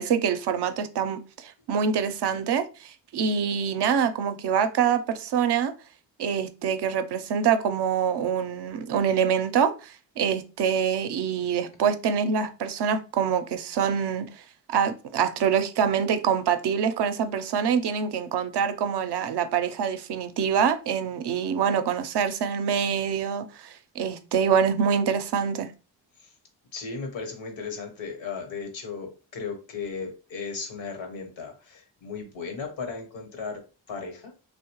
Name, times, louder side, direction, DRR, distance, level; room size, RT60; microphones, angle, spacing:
voice 1, 0.0-5.7 6.2-14.4 14.7-25.7, right 7 dB, 65° right, 0.5 m, -25 dB
voice 2, 26.7-34.3, left 5 dB, 80° left, 1.0 m, -36 dB
2.8 x 2.1 x 2.9 m
cardioid pair, 65°, 45 cm